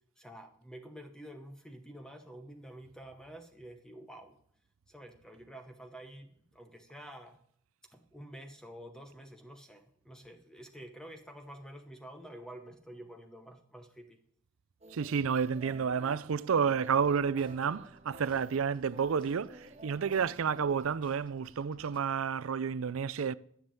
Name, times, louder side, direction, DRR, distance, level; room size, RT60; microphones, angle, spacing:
voice 1, 0.2-4.4 4.9-7.4 7.9-14.2, right 1 dB, 5° left, 0.9 m, -49 dB
sound 1, 14.8-20.9, right 1 dB, 30° right, 1.1 m, -52 dB
voice 2, 14.9-23.3, right 6 dB, 80° right, 0.5 m, -30 dB
sound 2, 16.7-22.0, left 1 dB, 25° left, 1.2 m, -62 dB
13.0 x 7.3 x 7.5 m
head